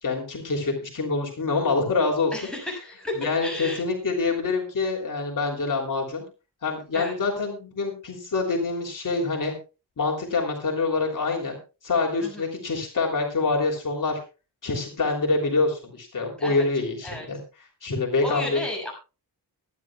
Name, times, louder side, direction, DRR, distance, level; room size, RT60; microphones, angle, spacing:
voice 1, 0.0-2.3 3.2-6.2 6.6-9.5 10.0-11.6 11.8-14.2 14.6-17.4 17.8-18.6, left 3 dB, 55° left, 1 dB, 3.2 m, -26 dB
voice 2, 2.3-3.8 6.9-7.1 12.2-12.5 16.4-16.6 17.0-17.3 18.2-18.9, left 1 dB, ahead, -2 dB, 6.7 m, -33 dB
23.5 x 10.5 x 2.4 m, 0.31 s
wide cardioid pair, 160°, 38 cm